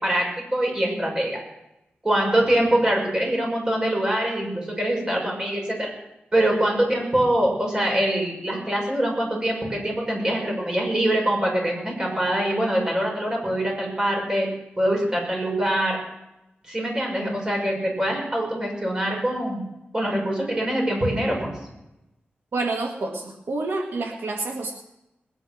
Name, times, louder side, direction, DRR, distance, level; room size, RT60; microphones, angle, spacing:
voice 1, 0.0-1.4 2.0-5.9 6.3-14.5 14.8-16.0 16.7-19.6 19.9-21.5, right 1 dB, 20° right, -1 dB, 6.1 m, -24 dB
voice 2, 22.5-24.7, right 3 dB, 80° right, 2 dB, 1.8 m, -28 dB
20.0 x 10.0 x 6.2 m, 0.90 s
wide cardioid pair, 115°, 4 cm